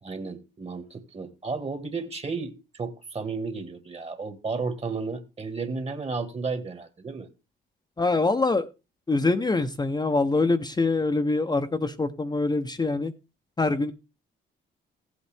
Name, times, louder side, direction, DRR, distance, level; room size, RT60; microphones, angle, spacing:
voice 1, 0.0-7.3, right 4 dB, 30° right, 1.7 m, -33 dB
voice 2, 8.0-8.7 9.1-13.1 13.6-13.9, left 3 dB, 20° left, 0.8 m, -24 dB
15.5 x 8.2 x 3.4 m
cardioid pair, 90°, 20 cm